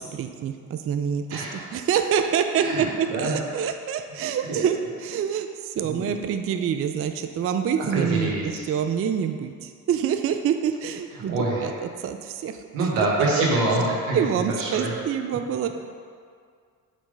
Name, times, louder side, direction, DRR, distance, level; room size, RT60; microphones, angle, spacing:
voice 1, 0.0-8.3 8.7-11.7 12.0-13.1 14.1-15.7, right 8 dB, 30° right, 7 dB, 0.4 m, -26 dB
voice 2, 1.3-1.6 2.6-3.4 4.5-4.7 5.9-6.1 7.8-8.6 11.3-11.7 12.7-14.2 14.6-14.9, right 2 dB, 85° right, -3 dB, 1.4 m, -25 dB
7.2 x 3.2 x 5.2 m, 2.1 s
hypercardioid pair, 55°, 46 cm